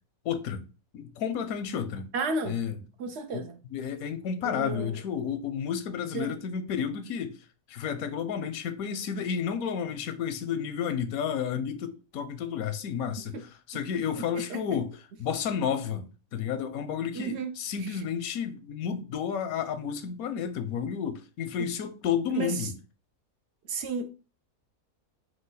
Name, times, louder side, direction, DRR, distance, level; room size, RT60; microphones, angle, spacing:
voice 1, 0.2-0.6 0.9-2.1 2.4-2.8 3.3-3.5 3.7-7.4 7.7-22.7, left 7 dB, 80° left, 1.1 m, -31 dB
voice 2, 2.1-2.5 3.0-3.6 4.4-5.0 6.1-6.3 13.3-13.4 14.1-14.6 17.1-17.5 17.8-18.0 22.3-22.5 23.7-24.1, right 3 dB, 60° right, 0.8 m, -33 dB
4.8 x 2.2 x 3.9 m
omnidirectional pair, 1.5 m